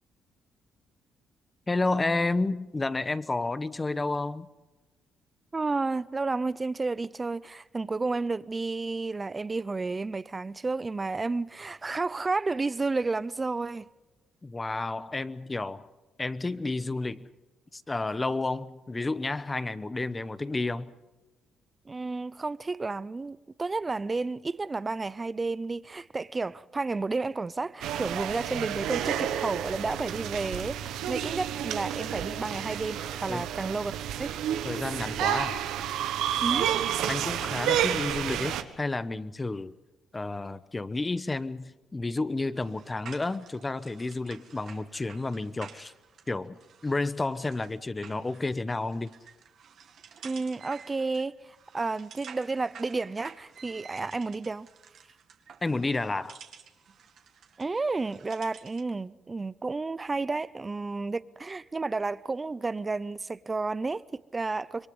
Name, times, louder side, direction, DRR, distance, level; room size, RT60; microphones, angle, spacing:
voice 1, 1.7-4.5 14.4-15.9 16.2-17.3 17.7-20.9 33.3-33.4 34.6-35.6 37.1-39.7 40.1-45.9 46.3-49.1 55.6-56.4, left 3 dB, 20° left, 1.0 m, -31 dB
voice 2, 5.5-13.9 21.9-33.9 34.2-34.3 36.4-36.7 50.2-54.7 57.6-64.9, right 3 dB, 25° right, 0.6 m, -31 dB
sound 1, 27.8-38.6, right 10 dB, 90° right, 1.3 m, -30 dB
sound 2, 42.5-58.9, right 7 dB, 65° right, 2.2 m, -51 dB
26.5 x 23.0 x 5.4 m
cardioid pair, 90°, 0 cm